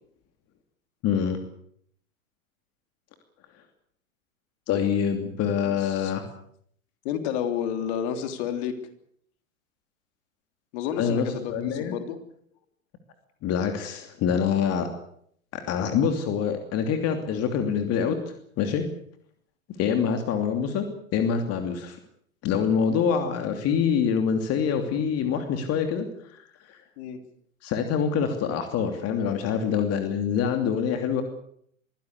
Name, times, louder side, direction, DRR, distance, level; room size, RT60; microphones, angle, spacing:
voice 1, 1.0-1.4 4.7-6.2 11.0-12.0 13.4-14.9 15.5-18.2 18.6-18.9 19.8-20.8 21.1-22.0 22.4-26.8 27.6-31.2, left 7 dB, 35° left, 6 dB, 2.9 m, -25 dB
voice 2, 5.6-6.1 7.0-8.7 10.7-12.2 27.0-27.2, left 9 dB, 50° left, 8 dB, 3.6 m, -30 dB
24.0 x 16.0 x 8.3 m, 0.66 s
hypercardioid pair, 105°, 42 cm